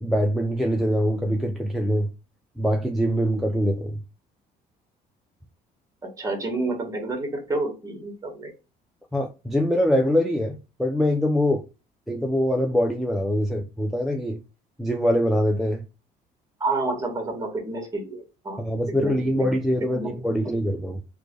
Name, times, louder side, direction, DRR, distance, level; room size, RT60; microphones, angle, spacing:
voice 1, 0.0-2.1 2.6-4.0 9.1-11.6 12.1-14.4 14.8-15.8 18.6-21.0, equal, ahead, 0.4 m, -23 dB
voice 2, 6.0-8.5 16.6-18.6 19.0-19.5 19.9-20.4, right 2 dB, 20° right, 1.5 m, -29 dB
3.2 x 2.2 x 3.6 m
cardioid pair, 110°, 17 cm